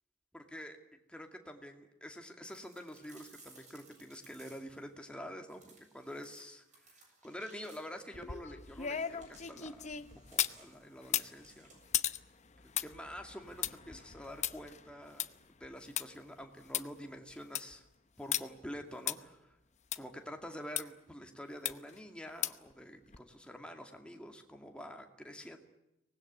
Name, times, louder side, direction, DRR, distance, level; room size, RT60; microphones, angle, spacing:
voice 1, 0.3-0.8 1.1-10.0 10.3-11.9 12.8-15.3 15.6-17.8 18.2-19.6 20.0-25.6, equal, 5° left, 4 dB, 2.4 m, -47 dB
sound 1, 2.5-4.9 5.5-8.1 9.0-12.0, right 3 dB, 35° right, 7.5 m, -61 dB
sound 2, 8.1-10.6 11.0-16.1 16.4-16.5 16.7-16.8 17.3-17.7 18.3-18.4 19.1-19.2 19.9-20.0 20.8-20.9 21.7-22.0 22.4-22.7 23.1-23.2, left 10 dB, 35° left, 0.8 m, -36 dB
24.5 x 19.5 x 9.6 m, 0.90 s
head